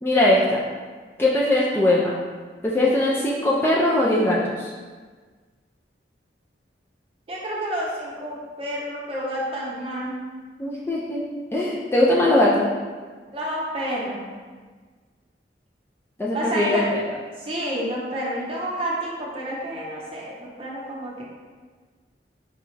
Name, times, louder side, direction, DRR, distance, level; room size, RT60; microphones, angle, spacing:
voice 1, 0.0-0.6 1.2-2.1 2.6-4.7 10.6-12.7 16.2-17.0, left 1 dB, 15° left, -5 dB, 0.3 m, -20 dB
voice 2, 7.3-10.2 13.3-14.2 16.3-16.9 17.4-21.2, right 1 dB, 30° right, -5 dB, 0.8 m, -29 dB
5.0 x 2.3 x 3.1 m, 1.5 s
head